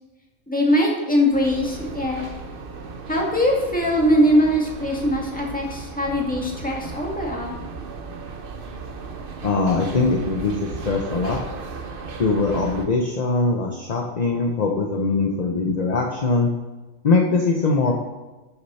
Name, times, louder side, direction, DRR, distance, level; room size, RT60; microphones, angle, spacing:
voice 1, 0.5-2.3 3.1-7.6, equal, 5° left, -2 dB, 1.8 m, -21 dB
sound 1, 1.3-12.9, right 4 dB, 50° right, 1.0 m, -36 dB
voice 2, 9.4-10.5 10.9-11.4 12.2-16.5 17.0-17.9, left 3 dB, 35° left, 1 dB, 0.9 m, -21 dB
12.5 x 6.5 x 4.3 m, 1.2 s
omnidirectional pair, 1.4 m